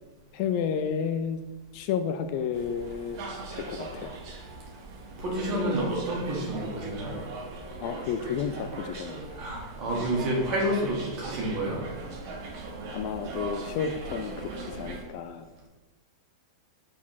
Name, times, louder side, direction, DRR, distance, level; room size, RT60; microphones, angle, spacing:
voice 1, 0.3-1.4 1.7-3.2 3.5-4.2 7.8-9.2 12.9-15.5, left 7 dB, 40° left, 8 dB, 0.3 m, -31 dB
sound 1, 2.5-15.0, right 3 dB, 45° right, 1.3 m, -39 dB
voice 2, 5.2-7.2 9.4-11.9, equal, 30° right, -3 dB, 1.8 m, -29 dB
4.8 x 4.1 x 5.7 m, 1.2 s
supercardioid pair, 165°, 2 cm